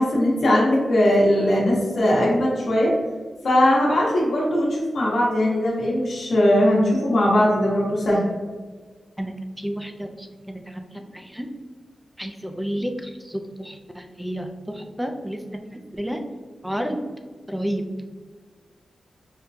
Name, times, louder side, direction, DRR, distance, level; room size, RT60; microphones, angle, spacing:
voice 1, 0.0-2.9 3.4-8.2, left 1 dB, 75° left, -5 dB, 1.1 m, -19 dB
voice 2, 9.2-11.5 12.2-16.2 16.6-17.0 17.5-17.9, equal, 5° right, 4 dB, 0.4 m, -31 dB
5.1 x 2.2 x 2.7 m, 1.4 s
wide cardioid pair, 125°, 0 cm